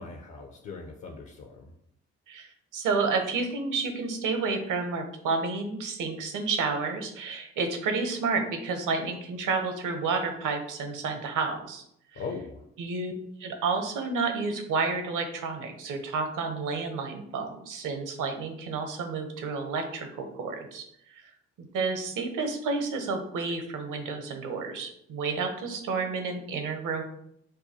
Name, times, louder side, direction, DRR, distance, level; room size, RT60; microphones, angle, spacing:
voice 1, 0.0-1.7 12.1-12.6, left 4 dB, 50° left, 2 dB, 0.7 m, -39 dB
voice 2, 2.3-11.8 12.1-12.2 12.8-13.1 13.4-20.8 21.1-21.3 21.6-27.0, right 4 dB, 60° right, 5 dB, 0.9 m, -30 dB
5.2 x 2.2 x 2.9 m, 0.72 s
hypercardioid pair, 45°, 36 cm